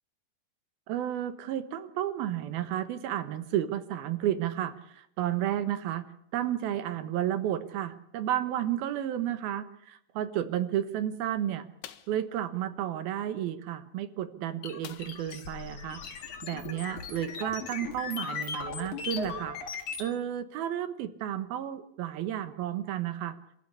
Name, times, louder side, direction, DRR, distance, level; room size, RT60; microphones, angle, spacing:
voice 1, 0.9-11.7 12.1-19.6 20.0-23.4, right 11 dB, 70° right, 12 dB, 2.9 m, -32 dB
sound 1, 11.8-12.2 14.8-15.4 15.8-15.9 16.3-16.4, left 12 dB, 85° left, 3.2 m, -47 dB
sound 2, 14.6-20.1, left 6 dB, 55° left, 3.0 m, -38 dB
26.5 x 13.5 x 8.4 m, 0.74 s
omnidirectional pair, 4.7 m